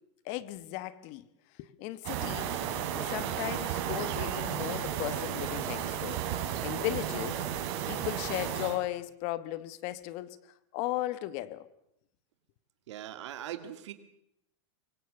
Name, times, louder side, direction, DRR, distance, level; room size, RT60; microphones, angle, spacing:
voice 1, 0.2-1.2 1.6-6.2 6.6-7.5 7.9-11.7, left 15 dB, 45° left, 1.3 m, -36 dB
sound 1, 2.0-8.8, right 9 dB, 50° right, 5.3 m, -33 dB
voice 2, 12.9-13.9, right 11 dB, 80° right, 2.3 m, -40 dB
24.5 x 23.5 x 6.7 m
supercardioid pair, 155°, 15 cm